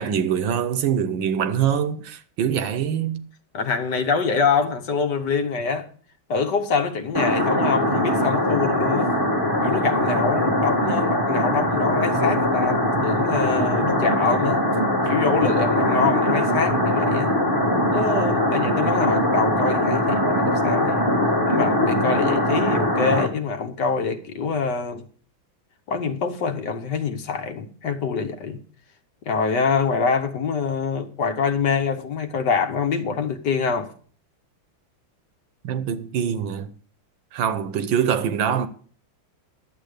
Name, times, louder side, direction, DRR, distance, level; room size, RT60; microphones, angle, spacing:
voice 1, 0.0-3.2 35.6-36.7 37.3-38.7, right 8 dB, 70° right, 1.4 m, -24 dB
voice 2, 3.5-5.9 6.3-9.1 9.6-14.6 15.1-17.3 17.9-21.1 21.5-25.0 25.9-28.6 29.3-33.9, left 5 dB, 60° left, 1.5 m, -25 dB
sound 1, 7.1-23.3, left 1 dB, 10° left, 1.4 m, -21 dB
11.0 x 7.8 x 6.5 m
omnidirectional pair, 2.3 m